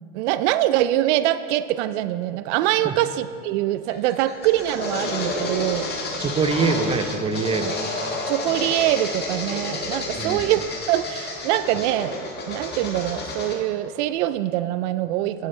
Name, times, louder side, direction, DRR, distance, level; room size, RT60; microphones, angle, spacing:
voice 1, 0.1-5.9 8.3-12.2 12.5-15.5, right 14 dB, 65° right, 13 dB, 0.5 m, -24 dB
sound 1, 3.9-13.6, left 2 dB, 25° left, 1.8 m, -30 dB
voice 2, 6.2-8.1 10.1-10.4, right 4 dB, 15° right, 8 dB, 0.7 m, -24 dB
17.0 x 8.2 x 3.3 m, 2.6 s
supercardioid pair, 115°, 37 cm